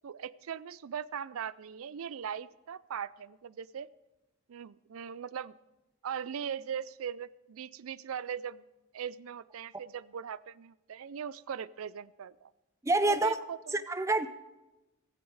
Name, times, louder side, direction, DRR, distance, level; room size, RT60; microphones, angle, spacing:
voice 1, 0.0-3.9 4.5-5.5 6.0-8.6 8.9-12.5 13.0-13.8, right 8 dB, 75° right, 0.4 m, -40 dB
voice 2, 12.8-13.4 13.7-14.3, right 2 dB, 15° right, 0.4 m, -27 dB
15.5 x 14.5 x 4.8 m
head